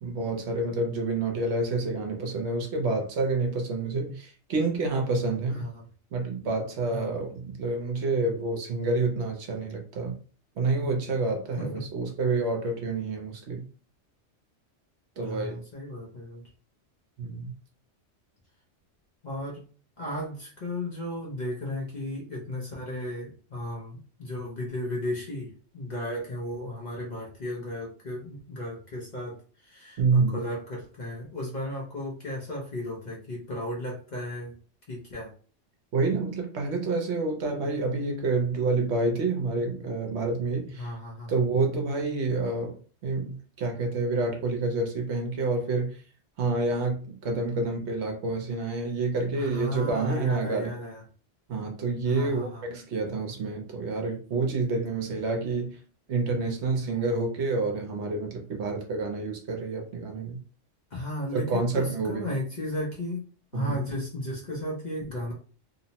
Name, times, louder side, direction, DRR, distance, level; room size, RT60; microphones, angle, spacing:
voice 1, 0.0-5.7 6.1-10.1 10.6-13.6 15.2-15.6 17.2-17.5 30.0-30.4 35.9-40.9 41.3-46.0 46.4-50.7 51.5-55.8 56.1-60.4 61.3-62.3 63.5-63.8, right 3 dB, 65° right, 2 dB, 0.9 m, -28 dB
voice 2, 5.5-5.8 6.9-7.1 11.6-11.7 15.2-16.4 19.2-19.6 20.0-34.5 34.9-35.3 40.8-41.4 49.4-51.0 52.1-52.6 60.9-63.3 63.5-65.3, left 1 dB, 45° left, -3 dB, 0.6 m, -35 dB
2.8 x 2.0 x 2.7 m, 0.40 s
omnidirectional pair, 1.3 m